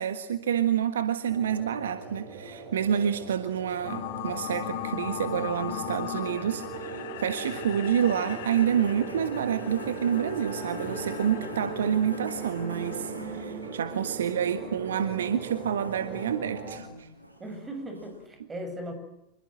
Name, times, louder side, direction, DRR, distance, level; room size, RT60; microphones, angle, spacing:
voice 1, 0.0-17.1, right 9 dB, 65° right, 1.5 m, -28 dB
sound 1, 1.3-16.8, right 5 dB, 40° right, 7.6 m, -40 dB
sound 2, 3.8-13.1, left 13 dB, 50° left, 1.8 m, -38 dB
sound 3, 7.8-18.3, equal, 85° right, 7.7 m, -44 dB
voice 2, 17.4-18.9, right 1 dB, 15° right, 7.1 m, -38 dB
27.0 x 22.5 x 7.7 m
figure-of-eight pair, 90°, 0 cm